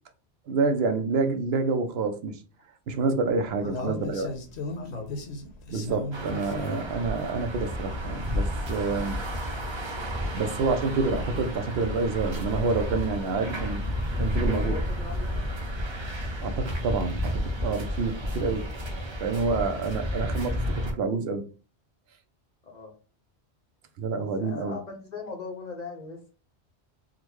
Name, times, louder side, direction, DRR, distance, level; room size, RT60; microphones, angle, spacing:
voice 1, 0.5-2.4 2.9-4.3 5.7-9.2 10.3-13.9 14.2-14.8 16.4-18.7 19.2-21.4 24.0-24.8, right 4 dB, 70° right, 0.8 m, -28 dB
sound 1, 3.3-16.4, left 1 dB, 75° left, 1.0 m, -39 dB
voice 2, 3.6-4.3 4.7-5.2 14.4-15.4 22.6-22.9 24.4-26.3, left 4 dB, 50° left, 0.6 m, -39 dB
everything should be recorded. coming home, 6.1-20.9, equal, 35° right, 0.5 m, -32 dB
3.7 x 2.1 x 3.0 m
omnidirectional pair, 1.1 m